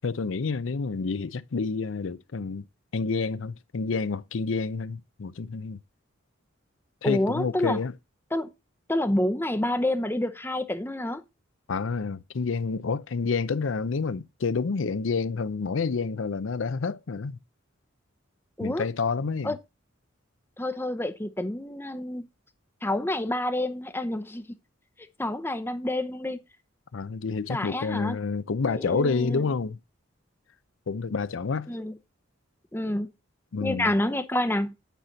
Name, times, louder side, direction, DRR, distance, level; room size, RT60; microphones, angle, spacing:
voice 1, 0.0-2.7 2.9-5.8 7.0-7.9 11.7-17.4 18.6-19.5 26.9-29.8 30.9-31.7 33.5-33.9, left 4 dB, 70° left, 0.5 m, -29 dB
voice 2, 7.0-7.8 8.3-8.5 8.9-11.2 18.6-18.8 19.4-19.6 20.6-22.3 22.8-24.4 25.2-26.4 27.5-28.2 28.7-29.4 31.7-31.9 32.7-33.1 33.6-34.7, left 1 dB, 10° left, 0.7 m, -28 dB
9.3 x 5.8 x 4.0 m
head